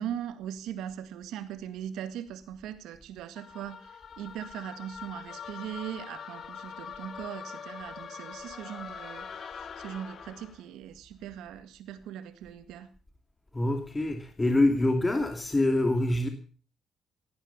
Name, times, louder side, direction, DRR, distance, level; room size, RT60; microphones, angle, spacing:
voice 1, 0.0-3.9 4.2-12.9, right 10 dB, 90° right, 11 dB, 1.9 m, -40 dB
sound 1, 3.4-10.6, left 7 dB, 50° left, 2.0 m, -43 dB
voice 2, 13.5-16.3, left 2 dB, 20° left, 5 dB, 2.6 m, -25 dB
17.0 x 10.5 x 7.2 m, 0.40 s
cardioid pair, 90°, 0 cm